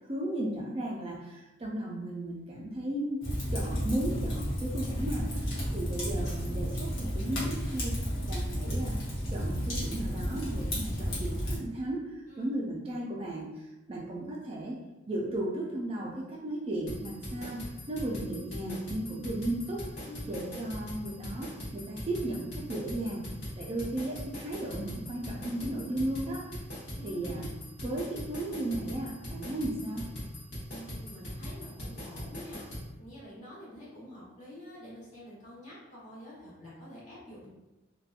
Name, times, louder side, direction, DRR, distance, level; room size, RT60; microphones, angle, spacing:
voice 1, 0.1-3.2 3.5-9.0 9.3-14.8 15.1-19.8 20.3-23.3 23.6-26.5 27.0-27.5 27.8-30.1, right 1 dB, 30° right, -3 dB, 0.3 m, -35 dB
Fire, 3.2-11.6, equal, 80° left, 0.9 m, -32 dB
sound 1, 16.9-32.9, equal, 60° left, 1.1 m, -40 dB
voice 2, 20.0-20.4 26.9-27.5 30.7-37.5, left 1 dB, 35° left, -7 dB, 1.0 m, -48 dB
2.7 x 2.2 x 2.4 m, 1.0 s
head